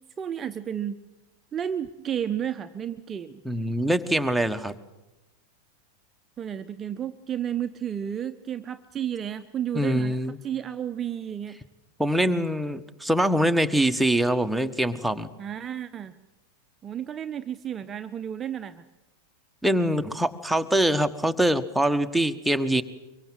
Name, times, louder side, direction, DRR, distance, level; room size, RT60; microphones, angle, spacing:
voice 1, 0.2-1.0 1.5-3.4 6.4-11.6 15.4-16.2 16.8-18.8, right 9 dB, 25° right, 10 dB, 0.9 m, -32 dB
voice 2, 3.4-4.7 9.7-10.4 12.0-15.3 19.6-22.8, right 1 dB, ahead, 7 dB, 1.4 m, -24 dB
24.0 x 24.0 x 7.8 m, 1.0 s
figure-of-eight pair, 90°, 0 cm